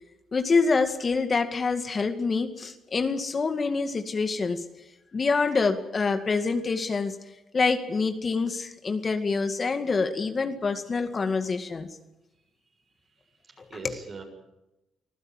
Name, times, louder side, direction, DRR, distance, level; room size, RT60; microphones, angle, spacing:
voice 1, 0.3-4.7 5.1-7.2 7.5-11.9 13.6-14.0, left 4 dB, 35° left, 7 dB, 2.1 m, -26 dB
voice 2, 13.3-14.2, right 4 dB, 45° right, 4 dB, 7.2 m, -43 dB
25.5 x 15.5 x 8.9 m, 0.96 s
cardioid pair, 90°, 0 cm